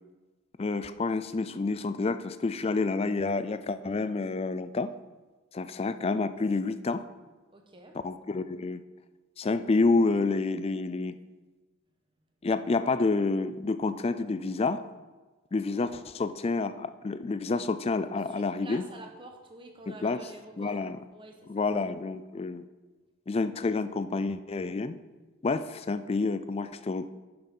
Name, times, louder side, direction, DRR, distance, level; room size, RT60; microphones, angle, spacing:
voice 1, 0.6-4.9 5.5-7.0 8.0-8.8 9.4-11.2 12.4-14.8 15.5-18.8 19.9-20.3 20.6-21.0 21.5-22.6 23.3-25.0 25.4-27.1, left 3 dB, 25° left, 12 dB, 0.3 m, -29 dB
voice 2, 7.5-8.0 15.8-15.9 18.3-20.8 21.1-21.7, right 2 dB, 20° right, 3 dB, 1.1 m, -47 dB
10.5 x 5.9 x 5.4 m, 1.2 s
head